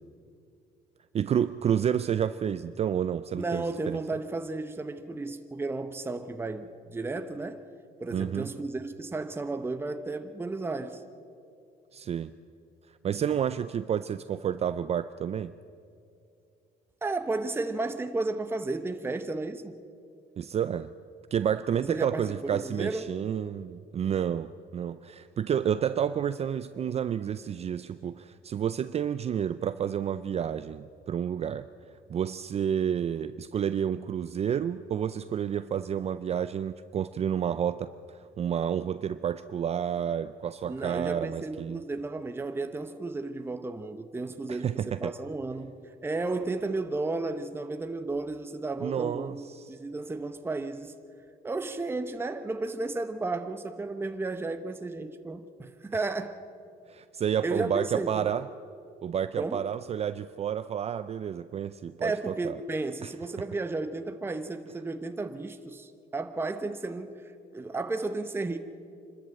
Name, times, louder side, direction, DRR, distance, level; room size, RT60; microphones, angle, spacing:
voice 1, 1.1-4.0 8.1-8.5 11.9-12.3 13.0-15.5 20.4-20.9 21.3-31.7 32.1-41.8 44.5-45.1 48.8-49.8 56.9-58.5 59.0-62.6, right 9 dB, 40° right, 13 dB, 0.5 m, -30 dB
voice 2, 3.3-7.6 8.0-11.0 17.0-19.8 21.7-23.0 40.6-45.7 46.0-51.0 51.4-56.4 57.4-58.3 59.4-59.7 62.0-68.6, right 3 dB, 15° right, 8 dB, 0.9 m, -33 dB
26.0 x 13.0 x 7.8 m, 2.5 s
cardioid pair, 110°, 17 cm